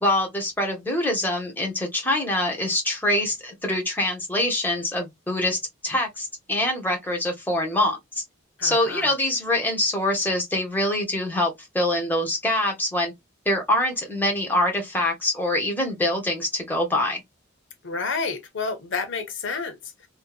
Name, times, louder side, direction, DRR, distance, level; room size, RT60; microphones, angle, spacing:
voice 1, 0.0-8.2 8.6-13.1 13.5-17.2, left 1 dB, 10° left, 0.9 m, -24 dB
voice 2, 8.6-9.1 17.8-20.1, left 4 dB, 65° left, 0.8 m, -30 dB
2.7 x 2.2 x 2.2 m
head